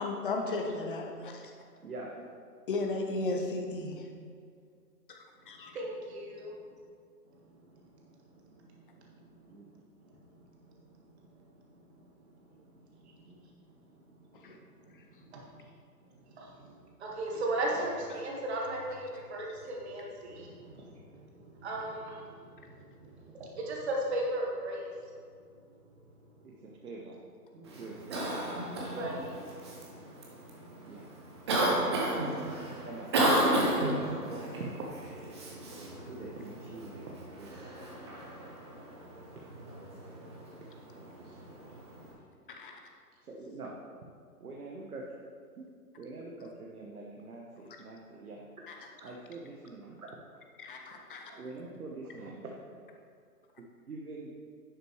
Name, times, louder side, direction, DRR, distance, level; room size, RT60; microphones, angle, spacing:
voice 1, 0.0-1.5 2.7-4.1 5.1-5.8 14.4-14.6 14.9-15.0 18.1-18.2 33.6-33.7 42.5-42.8 48.7-48.8 50.6-51.3, left 2 dB, 35° left, 3 dB, 0.9 m, -35 dB
voice 2, 1.8-2.3 9.5-9.6 13.2-13.4 26.4-27.2 27.5-28.3 30.8-31.1 32.8-33.2 33.7-34.9 36.1-37.6 41.0-41.8 43.2-43.7 44.4-45.0 45.6-45.7 46.0-48.4 49.0-50.1 50.9-53.0 53.9-54.3, right 3 dB, 65° right, -2 dB, 1.3 m, -44 dB
voice 3, 5.7-6.5 15.3-15.4 16.4-16.5 17.0-20.9 21.4-22.2 23.4-24.8 28.9-29.4, right 1 dB, 40° right, -2 dB, 1.9 m, -35 dB
Cough, 27.6-42.1, right 1 dB, 15° right, 0.7 m, -34 dB
11.0 x 6.5 x 3.2 m, 2.2 s
figure-of-eight pair, 145°, 48 cm